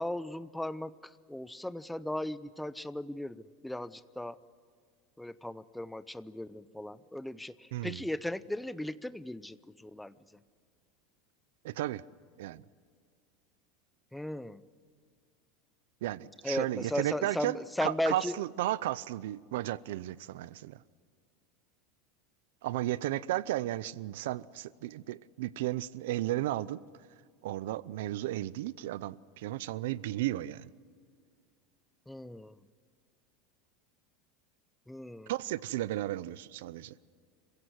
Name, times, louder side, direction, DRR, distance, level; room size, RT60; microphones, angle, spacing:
voice 1, 0.0-4.4 5.2-10.2 14.1-14.6 16.4-18.4 32.1-32.6 34.9-35.3, left 1 dB, 5° left, 0.5 m, -37 dB
voice 2, 11.6-12.0 12.4-12.6 16.0-20.8 22.6-26.8 27.4-30.7 35.3-36.9, right 15 dB, 80° right, 0.6 m, -34 dB
26.5 x 16.5 x 9.6 m
supercardioid pair, 150°, 0 cm